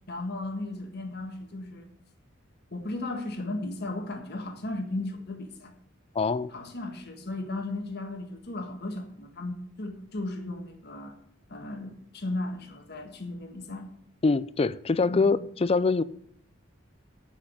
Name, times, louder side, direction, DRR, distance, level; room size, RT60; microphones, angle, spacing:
voice 1, 0.1-1.9 2.7-5.7 6.5-11.2 11.5-13.9 15.0-15.3, left 2 dB, 55° left, 1.5 m, -35 dB
voice 2, 6.1-6.5 14.2-16.0, left 4 dB, 30° left, 0.4 m, -24 dB
8.4 x 6.0 x 8.0 m
head